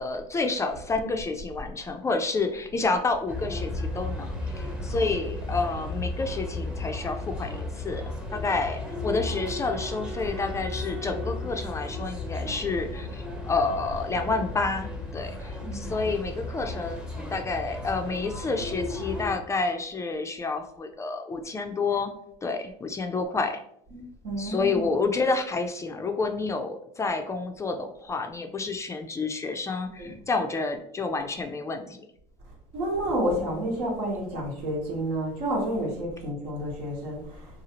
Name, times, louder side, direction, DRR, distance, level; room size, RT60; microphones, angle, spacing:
voice 1, 0.0-8.0 8.3-22.1 22.4-23.6 24.4-32.0, left 3 dB, 20° left, 5 dB, 0.3 m, -29 dB
sound 1, 3.3-19.3, left 2 dB, 5° right, 0.7 m, -34 dB
Wind instrument woodwind instrument, 7.9-13.0, left 3 dB, 55° right, 0.6 m, -43 dB
voice 2, 15.6-16.0 23.9-24.8 30.0-30.1 32.7-37.2, right 1 dB, 75° right, -2 dB, 1.2 m, -30 dB
2.7 x 2.4 x 2.8 m, 0.69 s
supercardioid pair, 95°, 14 cm